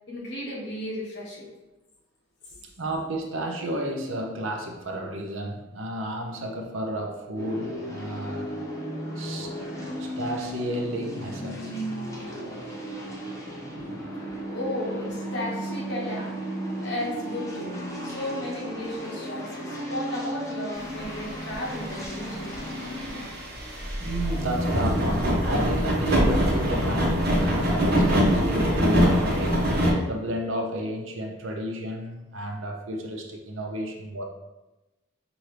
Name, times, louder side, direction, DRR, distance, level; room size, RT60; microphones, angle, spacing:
voice 1, 0.1-1.5 2.5-2.6 13.8-16.4 16.8-17.8 18.0-22.9, left 1 dB, 55° left, -4 dB, 1.2 m, -35 dB
voice 2, 2.8-8.5 9.2-9.5 10.0-11.7 24.0-29.7 30.0-34.2, right 1 dB, 70° right, 2 dB, 0.7 m, -32 dB
sound 1, 7.4-23.3, equal, 15° left, 0.7 m, -35 dB
sound 2, 20.8-29.9, equal, 45° right, 1.0 m, -24 dB
5.9 x 2.6 x 3.3 m, 1.1 s
head